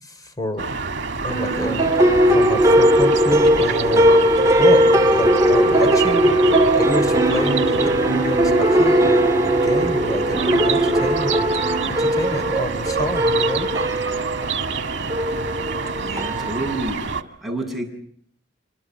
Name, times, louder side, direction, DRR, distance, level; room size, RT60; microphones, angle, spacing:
voice 1, 0.0-0.7 1.2-1.9 2.3-4.8 5.1-9.0 9.6-11.5 11.9-13.7, left 1 dB, 20° left, 9 dB, 3.6 m, -28 dB
sound 1, 0.6-17.2, right 4 dB, 70° right, 1.9 m, -28 dB
sound 2, 1.3-16.9, right 1 dB, 20° right, 2.2 m, -18 dB
voice 2, 16.0-17.0 17.4-17.8, right 2 dB, ahead, 0 dB, 8.0 m, -28 dB
28.5 x 26.0 x 6.2 m, 0.65 s
head